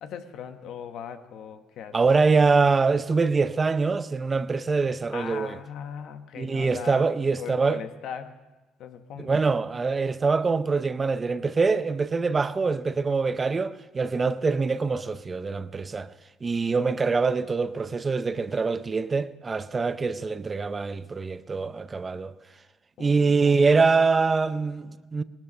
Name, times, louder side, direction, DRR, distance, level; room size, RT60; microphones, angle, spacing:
voice 1, 0.0-2.0 5.1-8.4 8.8-9.4 16.7-17.1 23.0-23.7, left 8 dB, 70° left, 1.1 m, -39 dB
voice 2, 1.9-5.6 6.4-7.8 9.2-16.1 16.4-22.3 23.0-25.2, right 4 dB, 30° right, 0.5 m, -24 dB
18.5 x 13.0 x 5.2 m
supercardioid pair, 90°, 0 cm